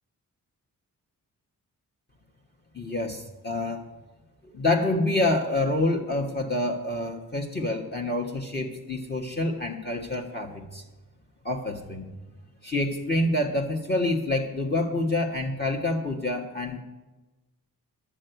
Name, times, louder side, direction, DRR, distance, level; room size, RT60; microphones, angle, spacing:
voice 1, 2.7-3.8 4.5-10.8 11.4-12.1 12.6-16.8, left 2 dB, 30° left, 2 dB, 1.3 m, -27 dB
11.5 x 6.4 x 9.1 m, 1.1 s
cardioid pair, 95°, 36 cm